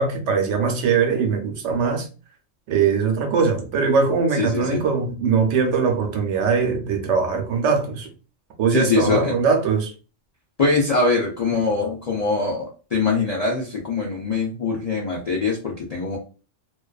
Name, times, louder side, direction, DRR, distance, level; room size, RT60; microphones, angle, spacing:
voice 1, 0.0-2.1 2.7-8.1 8.6-9.9, right 5 dB, 70° right, 0.9 m, -21 dB
voice 2, 4.4-4.8 8.7-9.4 10.6-16.2, left 3 dB, 55° left, 0.4 m, -23 dB
2.4 x 2.2 x 2.3 m
omnidirectional pair, 1.3 m